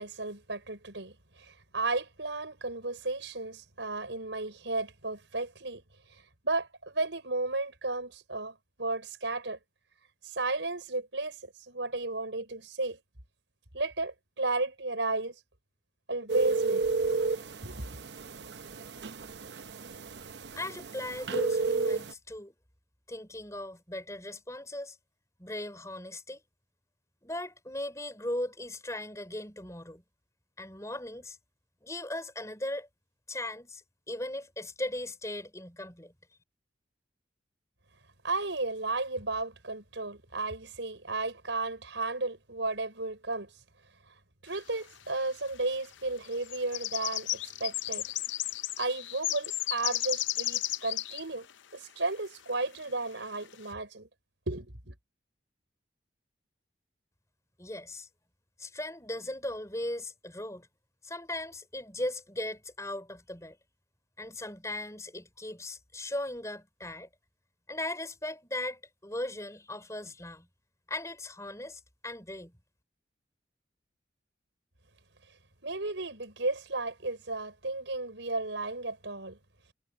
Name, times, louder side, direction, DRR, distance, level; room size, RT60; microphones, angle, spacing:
voice 1, 0.0-5.8 6.1-9.6 10.2-13.0 13.7-15.4 16.1-16.8 17.6-18.0 38.2-43.5 44.4-48.1 48.8-51.5 51.7-54.1 54.5-55.0 75.6-79.4, right 2 dB, 85° right, 5.5 m, -34 dB
sound 1, 16.3-22.1, right 3 dB, 65° right, 0.7 m, -32 dB
voice 2, 20.6-22.5 23.1-25.0 25.4-26.4 27.2-30.0 30.6-31.4 31.8-32.9 33.3-36.1 57.6-58.1 58.6-60.7 61.0-63.6 64.2-67.1 67.7-70.5 70.9-72.5, left 1 dB, 15° left, 5.0 m, -38 dB
sound 2, 44.8-44.9 45.7-45.9 46.2-51.2 51.5-51.6 52.0-52.1 52.9-53.0 53.5-53.6, left 14 dB, 85° left, 0.6 m, -33 dB
head